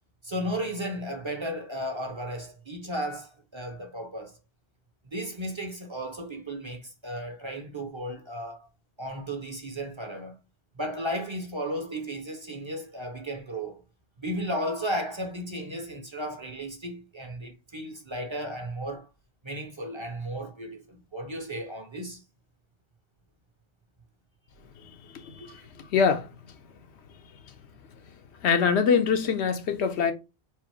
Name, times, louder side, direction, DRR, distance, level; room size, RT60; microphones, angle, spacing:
voice 1, 0.2-4.4 5.1-8.7 9.0-10.3 10.8-13.8 14.2-19.1 19.4-22.2 25.4-25.7, equal, 30° right, 0.8 m, -34 dB
voice 2, 24.8-26.3 28.4-30.1, left 6 dB, 80° left, 1.0 m, -25 dB
4.7 x 2.0 x 4.4 m
omnidirectional pair, 1.1 m